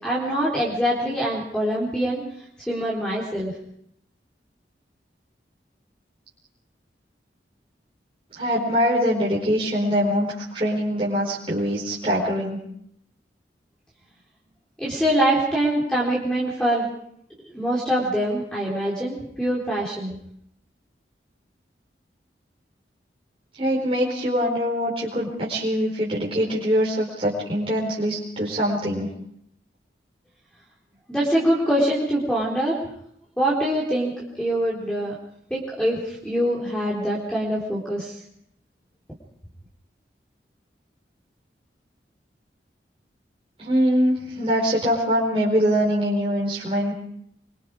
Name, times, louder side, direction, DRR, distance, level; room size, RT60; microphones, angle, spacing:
voice 1, 0.0-2.2 2.7-3.5 14.8-16.9 17.4-20.2 31.1-32.8 33.4-35.1 35.5-38.2, right 1 dB, 5° left, -5 dB, 4.0 m, -24 dB
voice 2, 8.3-12.6 23.6-29.1 43.6-46.9, equal, 30° right, -5 dB, 4.7 m, -23 dB
25.5 x 24.5 x 5.0 m, 0.72 s
head